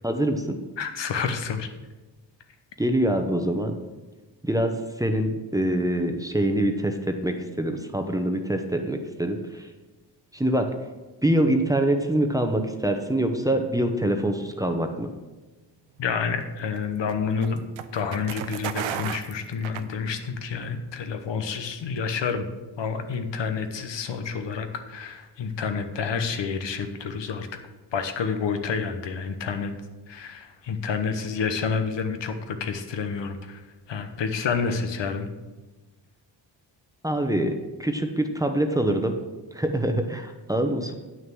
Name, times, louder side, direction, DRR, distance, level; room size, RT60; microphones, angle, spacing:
voice 1, 0.0-0.6 2.8-3.7 4.4-9.7 10.3-10.7 11.2-15.1 37.0-39.1 39.5-40.9, right 1 dB, 10° right, 5 dB, 0.9 m, -25 dB
voice 2, 0.8-1.7 16.0-17.6 17.9-22.5 22.8-27.5 27.9-29.7 30.1-33.6 33.9-35.3, left 5 dB, 70° left, 7 dB, 1.1 m, -29 dB
sound 1, 16.0-20.5, right 10 dB, 90° right, 0.7 m, -35 dB
9.3 x 6.4 x 6.1 m, 1.2 s
cardioid pair, 105°, 45 cm